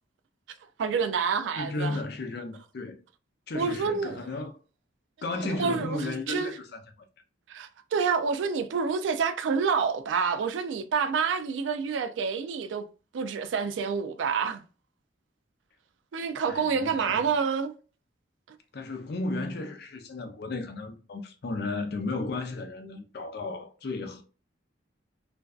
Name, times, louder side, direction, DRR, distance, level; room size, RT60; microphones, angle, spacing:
voice 1, 0.8-2.0 3.5-4.3 5.5-6.5 7.5-12.9 13.1-14.6 16.1-17.7, right 5 dB, 85° right, 0.3 m, -28 dB
voice 2, 1.6-3.0 3.5-4.5 5.2-6.8 16.5-17.3 18.7-24.2, left 2 dB, 60° left, 0.5 m, -34 dB
2.5 x 2.3 x 2.2 m
head